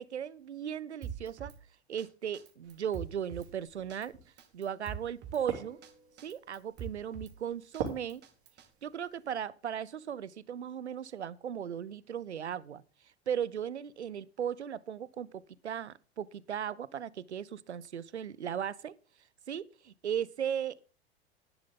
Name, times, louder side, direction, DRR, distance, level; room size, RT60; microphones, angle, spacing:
voice 1, 0.0-1.5 1.9-4.1 4.5-5.8 6.2-8.2 8.8-12.8 13.3-18.9 19.5-20.9, right 8 dB, 85° right, 21 dB, 0.6 m, -37 dB
Drum kit, 1.0-1.6 2.0-2.1 2.3-3.5 3.9-4.1 4.4-5.4 5.8-5.9 6.2-7.3 7.7-8.7, right 8 dB, 30° right, 1.7 m, -44 dB
sound 1, 2.6-9.3, right 7 dB, 55° right, 3.4 m, -45 dB
11.0 x 10.5 x 3.8 m, 0.34 s
figure-of-eight pair, 90°, 33 cm